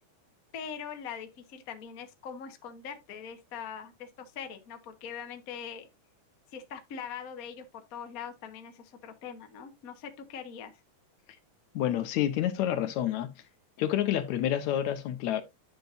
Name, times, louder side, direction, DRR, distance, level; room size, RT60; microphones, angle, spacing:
voice 1, 0.5-5.9 6.5-10.8, left 7 dB, 45° left, 1.1 m, -42 dB
voice 2, 11.7-13.3 13.8-15.4, left 11 dB, 75° left, 2.2 m, -28 dB
10.5 x 6.8 x 2.5 m
omnidirectional pair, 3.4 m